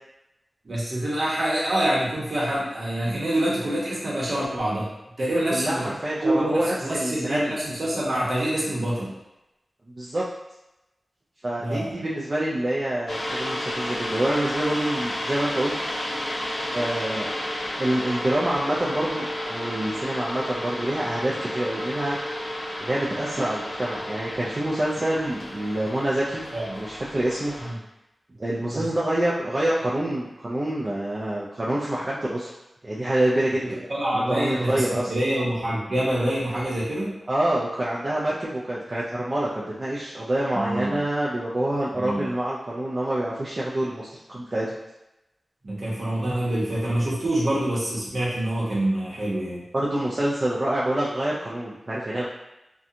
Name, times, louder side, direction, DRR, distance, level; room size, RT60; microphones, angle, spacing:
voice 1, 0.6-4.9 5.2-5.9 6.2-9.1 11.6-12.0 26.5-26.8 27.6-27.7 28.7-28.9 33.6-37.1 40.5-41.0 41.9-42.3 45.6-49.6, right 1 dB, 55° right, -6 dB, 0.9 m, -26 dB
voice 2, 5.5-7.6 9.9-10.2 11.4-15.8 16.7-17.3 17.8-22.2 22.8-26.4 26.8-27.5 28.4-32.5 32.8-33.8 34.1-35.1 37.3-44.8 49.7-52.3, right 1 dB, 35° right, -7 dB, 0.4 m, -26 dB
sound 1, 13.1-27.7, left 1 dB, 55° left, 0.5 m, -32 dB
2.7 x 2.2 x 2.5 m, 0.94 s
wide cardioid pair, 95°, 0 cm